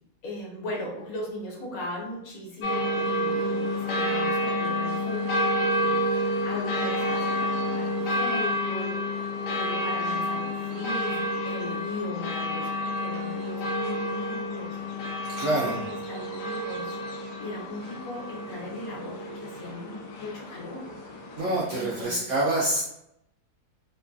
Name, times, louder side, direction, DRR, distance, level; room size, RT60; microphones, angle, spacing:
voice 1, 0.2-14.8 15.1-17.0 17.4-20.9 21.7-22.3, left 1 dB, 65° left, -3 dB, 1.3 m, -38 dB
sound 1, 2.6-22.0, left 1 dB, 90° left, 1.2 m, -29 dB
voice 2, 15.2-15.8 21.4-22.8, right 1 dB, 70° right, -5 dB, 0.7 m, -26 dB
3.0 x 2.5 x 2.2 m, 0.79 s
omnidirectional pair, 1.7 m